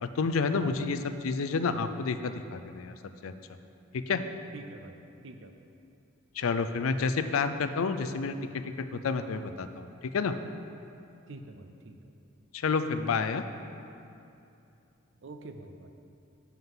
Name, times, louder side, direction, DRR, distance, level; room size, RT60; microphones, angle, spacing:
voice 1, 0.0-2.9 3.2-3.3 3.9-4.2 6.4-8.3 8.8-10.3 12.5-13.4, left 4 dB, 85° left, 10 dB, 0.4 m, -29 dB
voice 2, 4.5-5.0 5.2-5.5 11.3-12.1 15.2-15.9, right 2 dB, 60° right, 7 dB, 0.5 m, -46 dB
7.2 x 5.7 x 5.5 m, 2.7 s
head